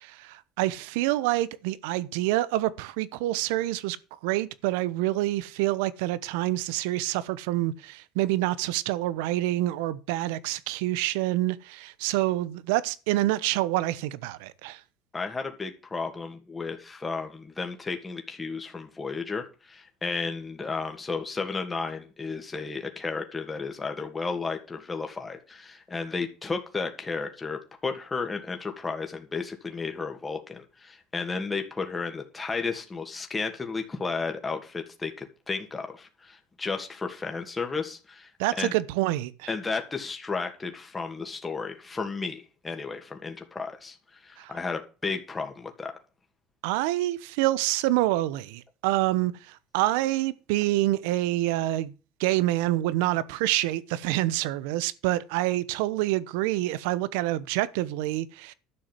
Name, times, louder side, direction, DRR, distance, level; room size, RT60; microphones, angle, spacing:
voice 1, 0.0-4.0 4.2-14.8 38.4-39.5 44.4-44.5 46.6-51.9 52.2-58.5, right 16 dB, 80° right, 0.9 m, -27 dB
voice 2, 15.1-38.3 38.6-38.7 39.5-45.9, left 4 dB, 20° left, 2.5 m, -33 dB
11.5 x 6.4 x 7.6 m
supercardioid pair, 85°, 0 cm